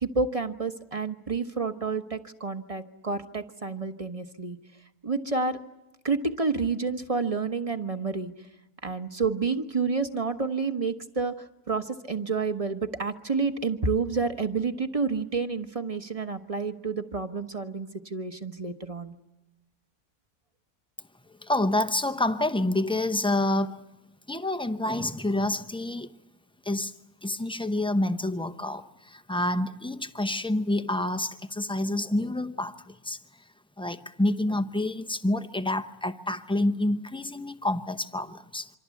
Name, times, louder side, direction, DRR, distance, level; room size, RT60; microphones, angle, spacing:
voice 1, 0.0-4.6 5.0-5.6 6.0-8.3 8.8-11.3 11.7-19.1, right 4 dB, 25° right, 1.1 m, -29 dB
voice 2, 21.4-23.8 24.3-26.1 26.6-26.9 27.2-33.2 33.8-38.7, left 1 dB, 5° left, 0.4 m, -28 dB
26.5 x 25.5 x 8.4 m
omnidirectional pair, 1.6 m